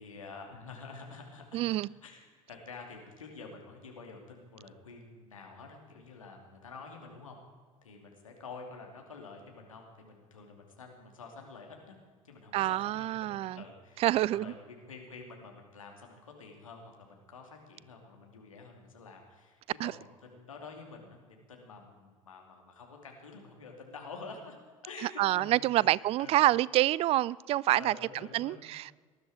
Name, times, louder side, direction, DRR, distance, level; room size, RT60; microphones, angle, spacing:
voice 1, 0.0-7.4 7.8-12.0 12.2-24.6 24.8-25.9 26.2-26.4 27.8-28.6, left 4 dB, 80° left, 2.7 m, -48 dB
voice 2, 1.5-1.9 12.5-13.6 14.0-14.5 19.8-19.9 25.0-28.0 28.3-28.9, right 15 dB, 35° right, 0.4 m, -27 dB
19.5 x 12.5 x 4.9 m
figure-of-eight pair, 70°, 17 cm